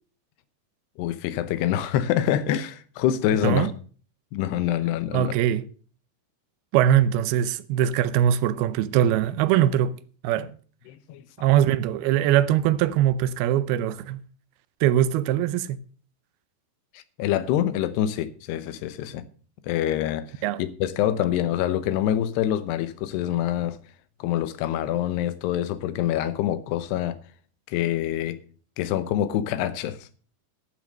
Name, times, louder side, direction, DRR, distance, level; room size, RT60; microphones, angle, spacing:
voice 1, 1.0-3.7 4.3-5.3 10.4-10.5 10.9-11.3 16.9-19.2 19.6-20.3 20.6-23.8 24.2-27.2 27.7-28.4 28.8-30.1, left 11 dB, 85° left, 3.0 m, -26 dB
voice 2, 5.1-5.6 6.7-10.0 10.2-10.5 11.4-14.2 14.8-15.8 20.4-20.6, right 11 dB, 80° right, 2.5 m, -22 dB
12.0 x 7.5 x 6.4 m
omnidirectional pair, 4.7 m